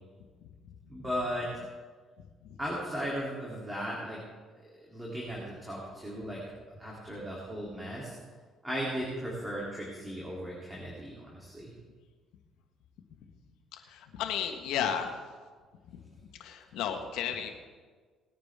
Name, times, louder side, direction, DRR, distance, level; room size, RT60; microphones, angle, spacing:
voice 1, 0.9-1.5 2.6-4.2 4.7-6.4 6.8-8.2 8.6-11.7, equal, 10° right, -5 dB, 3.3 m, -36 dB
voice 2, 13.7-15.1 16.4-17.5, left 8 dB, 85° left, 5 dB, 1.5 m, -33 dB
19.0 x 9.7 x 3.7 m, 1.5 s
cardioid pair, 85°, 0 cm